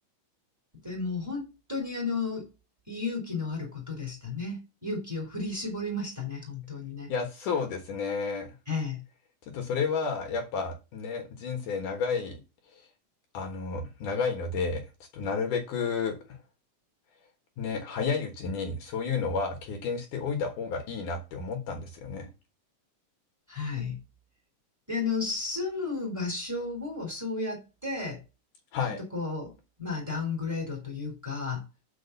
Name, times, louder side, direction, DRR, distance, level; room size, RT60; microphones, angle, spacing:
voice 1, 0.8-2.5 2.9-7.1 8.7-9.0 23.5-24.0 24.9-28.2 29.1-29.5 29.8-31.6, left 4 dB, 5° right, 3.6 m, -33 dB
voice 2, 7.1-8.5 9.5-12.4 13.3-14.8 15.1-16.2 17.6-22.3 28.7-29.0, left 5 dB, 70° left, 2.8 m, -31 dB
6.8 x 5.1 x 6.8 m
omnidirectional pair, 4.0 m